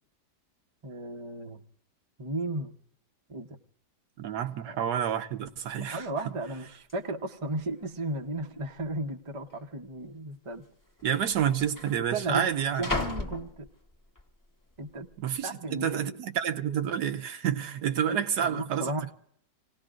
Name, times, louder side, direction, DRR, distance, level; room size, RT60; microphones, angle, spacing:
voice 1, 0.8-1.6 2.2-2.8 3.3-3.6 4.6-4.8 5.7-10.6 12.1-12.5 12.8-13.7 14.8-15.1 15.4-16.2 18.1-19.1, right 2 dB, 25° right, 0.7 m, -35 dB
voice 2, 4.2-6.1 11.0-12.9 15.2-19.1, right 9 dB, 75° right, 1.4 m, -29 dB
sound 1, 5.4-5.5 5.8-6.2 6.9-7.0 7.7-8.3 8.5-8.7 9.5-9.7 10.7-10.8 11.0-14.2 14.7-15.1, left 2 dB, 15° left, 1.0 m, -37 dB
28.0 x 18.0 x 2.5 m
omnidirectional pair, 1.8 m